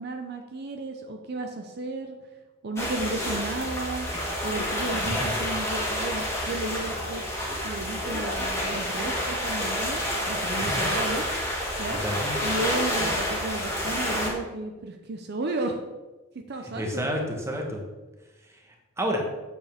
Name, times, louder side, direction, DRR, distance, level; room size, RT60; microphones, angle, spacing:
voice 1, 0.0-2.2 2.6-4.1 4.4-7.2 7.6-11.2 11.8-12.0 12.4-15.8 16.5-17.1, right 2 dB, 55° right, 4 dB, 0.6 m, -33 dB
sound 1, 2.8-14.3, equal, 15° left, 1.7 m, -29 dB
voice 2, 11.9-12.3 16.7-17.8 19.0-19.2, equal, 15° right, 1 dB, 1.2 m, -29 dB
8.3 x 7.0 x 3.5 m, 1.2 s
head